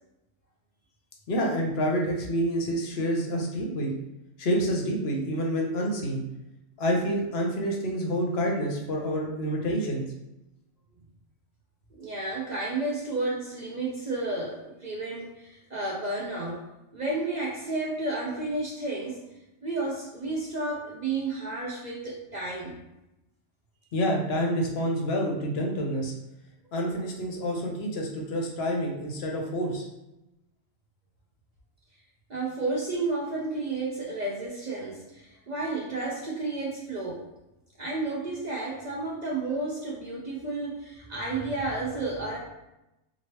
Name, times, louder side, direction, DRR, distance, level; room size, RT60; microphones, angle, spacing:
voice 1, 1.3-3.9 4.4-6.2 6.8-10.0 23.9-26.1 26.7-29.9, equal, 60° left, 0 dB, 0.8 m, -28 dB
voice 2, 12.0-16.6 16.9-19.2 19.6-22.8 32.3-37.3 37.8-42.4, right 2 dB, 50° right, -4 dB, 0.5 m, -32 dB
3.0 x 2.7 x 3.0 m, 0.93 s
omnidirectional pair, 1.3 m